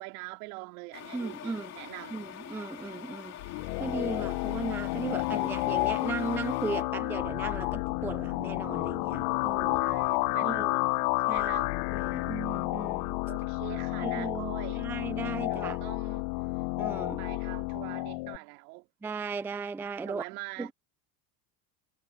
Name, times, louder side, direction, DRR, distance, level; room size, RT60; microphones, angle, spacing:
voice 1, 0.0-2.2 9.7-10.8 11.3-11.8 13.3-14.8 15.4-16.3 17.2-18.9 20.0-20.7, right 25 dB, 75° right, 3.3 m, -43 dB
sound 1, 0.9-6.8, left 10 dB, 35° left, 2.6 m, -45 dB
voice 2, 1.1-1.7 2.1-3.4 3.8-9.8 10.4-10.8 11.3-11.6 11.9-13.2 14.0-15.8 16.8-17.2 19.0-20.2 20.6-20.7, right 4 dB, 5° right, 0.4 m, -37 dB
sound 2, 3.4-18.4, left 24 dB, 60° left, 0.9 m, -31 dB
supercardioid pair, 130°, 44 cm